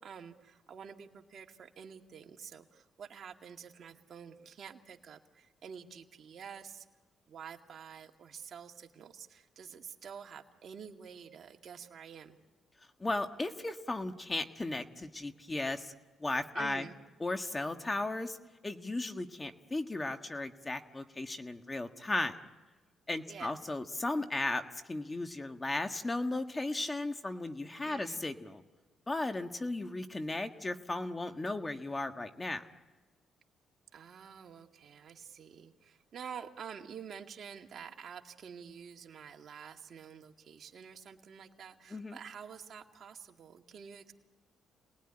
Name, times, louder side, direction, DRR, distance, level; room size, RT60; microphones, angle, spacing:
voice 1, 0.0-6.9 7.3-12.4 16.5-17.0 23.3-23.5 27.8-28.2 33.9-44.1, right 7 dB, 55° right, 3 dB, 2.2 m, -48 dB
voice 2, 13.0-15.9 16.2-16.8 17.2-18.4 18.6-22.4 23.1-24.6 24.9-28.6 29.1-32.6 41.9-42.2, left 2 dB, 20° left, 7 dB, 1.6 m, -35 dB
28.5 x 19.5 x 10.0 m, 1.2 s
cardioid pair, 90°, 0 cm